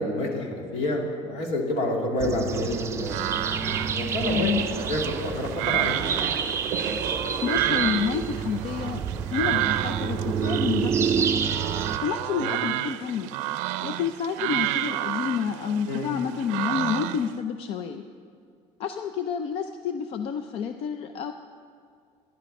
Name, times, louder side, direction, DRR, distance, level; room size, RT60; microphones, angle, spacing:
voice 1, 0.0-3.2 3.9-6.1 12.3-12.5 15.9-16.1, left 1 dB, 65° left, 0 dB, 2.4 m, -28 dB
sound 1, 2.2-12.0, right 6 dB, 20° right, 0.5 m, -29 dB
sound 2, 3.1-17.4, right 14 dB, 90° right, 0.5 m, -30 dB
voice 2, 4.3-4.6 7.4-9.0 9.3-11.4 12.0-13.3 13.8-18.0 18.8-21.3, left 7 dB, 50° left, 7 dB, 0.5 m, -29 dB
11.5 x 11.0 x 5.4 m, 2.3 s
cardioid pair, 155°, 12 cm